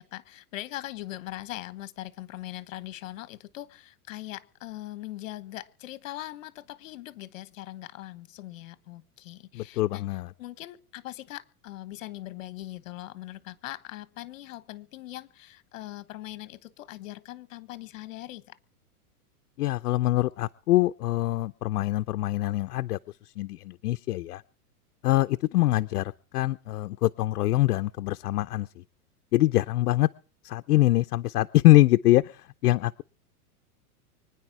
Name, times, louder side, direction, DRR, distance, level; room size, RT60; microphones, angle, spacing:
voice 1, 0.0-18.6 25.5-25.8, left 15 dB, 55° left, 1.2 m, -41 dB
voice 2, 9.5-10.3 19.6-23.0 23.4-24.4 25.0-28.7 29.3-30.1 30.4-32.2 32.6-33.0, left 16 dB, 80° left, 0.6 m, -24 dB
24.5 x 9.8 x 4.8 m
supercardioid pair, 165°, 46 cm